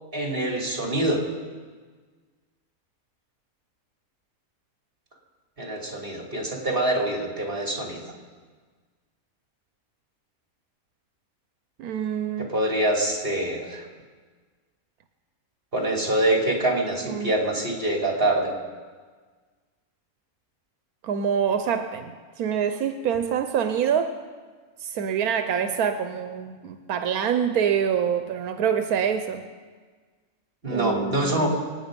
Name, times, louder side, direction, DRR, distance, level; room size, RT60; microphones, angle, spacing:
voice 1, 0.1-1.2 5.6-8.1 12.4-13.9 15.7-18.6 30.6-31.6, right 1 dB, 40° right, -1 dB, 3.2 m, -25 dB
voice 2, 11.8-12.5 17.1-17.3 21.0-24.2 24.8-29.4 30.7-31.5, right 7 dB, 85° right, 8 dB, 1.3 m, -26 dB
25.5 x 9.5 x 5.2 m, 1.5 s
omnidirectional pair, 1.5 m